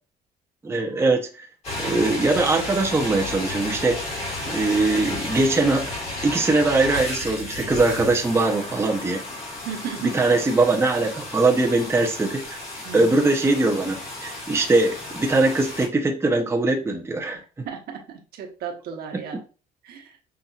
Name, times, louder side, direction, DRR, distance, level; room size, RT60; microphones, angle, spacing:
voice 1, 0.6-1.5 1.8-4.0 4.5-5.9 6.2-9.2 10.1-12.6 12.9-17.4, right 2 dB, 15° right, 1 dB, 0.7 m, -21 dB
sound 1, 1.6-15.9, left 2 dB, 40° left, 2.2 m, -33 dB
voice 2, 9.6-10.4 12.8-13.2 17.6-18.0 18.3-19.4 19.8-20.1, right 7 dB, 65° right, 3 dB, 1.0 m, -34 dB
5.6 x 2.6 x 2.4 m, 0.34 s
cardioid pair, 110°, 17 cm